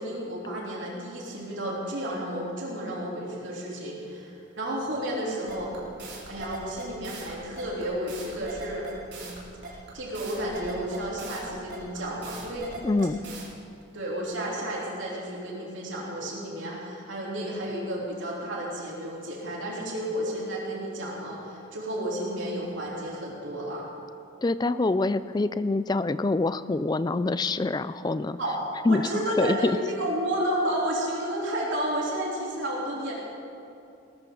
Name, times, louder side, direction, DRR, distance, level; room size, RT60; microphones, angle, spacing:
voice 1, 0.0-5.7 6.3-9.3 9.6-12.7 13.9-23.8 28.4-28.6 28.9-33.1, right 1 dB, 70° right, -5 dB, 3.4 m, -32 dB
sound 1, 5.5-13.4, right 3 dB, 55° right, 3.6 m, -41 dB
voice 2, 12.8-13.2 24.4-28.4 28.9-29.0 29.4-29.8, left 2 dB, 20° left, 14 dB, 0.3 m, -25 dB
19.5 x 13.5 x 3.9 m, 2.7 s
head